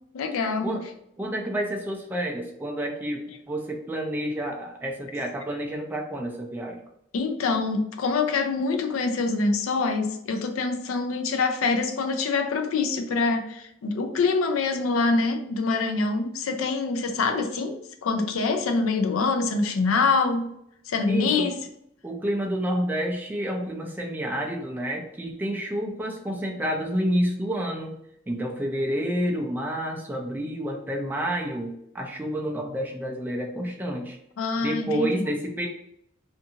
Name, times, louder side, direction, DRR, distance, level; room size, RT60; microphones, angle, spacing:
voice 1, 0.1-0.8 7.1-20.5 20.9-21.6 34.4-35.2, left 4 dB, 80° left, 5 dB, 0.4 m, -25 dB
voice 2, 1.2-6.8 21.1-21.5 22.0-27.9 28.3-34.2 34.6-35.7, equal, 10° right, 1 dB, 0.3 m, -29 dB
2.5 x 2.5 x 2.7 m, 0.72 s
head